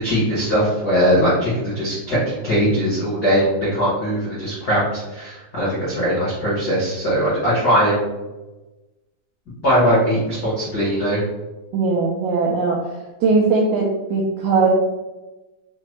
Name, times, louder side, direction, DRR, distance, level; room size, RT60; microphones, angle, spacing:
voice 1, 0.0-8.0 9.6-11.2, equal, 90° left, -9 dB, 0.8 m, -20 dB
voice 2, 11.7-12.8 13.2-14.7, right 4 dB, 85° right, -2 dB, 1.7 m, -19 dB
5.7 x 2.1 x 3.1 m, 1.1 s
omnidirectional pair, 4.1 m